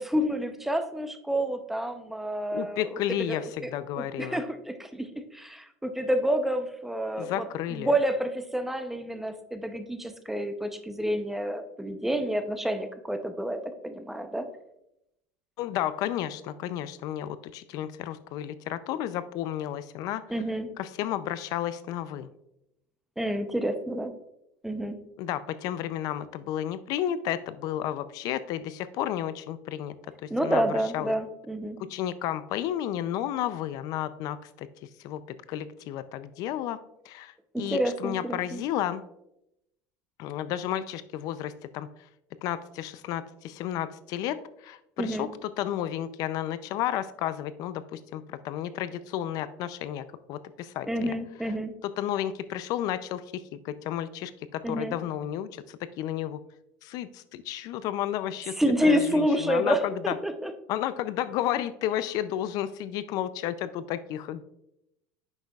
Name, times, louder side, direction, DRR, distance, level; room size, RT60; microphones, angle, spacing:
voice 1, 0.0-2.8 3.3-3.7 4.0-7.4 7.7-14.5 20.3-20.7 23.2-24.1 24.6-25.0 30.3-31.8 37.5-38.6 45.0-45.3 50.9-51.7 54.6-54.9 58.6-60.5, equal, 5° right, 8 dB, 0.6 m, -29 dB
voice 2, 2.5-4.4 7.2-7.9 15.6-20.2 20.8-22.3 25.2-30.0 30.2-30.6 30.9-31.1 31.9-34.7 35.0-36.8 37.1-39.0 40.2-41.9 42.4-51.1 51.8-56.4 56.8-60.2 60.7-64.4, left 11 dB, 55° left, 14 dB, 0.4 m, -32 dB
9.7 x 6.5 x 2.4 m, 0.82 s
supercardioid pair, 125°, 7 cm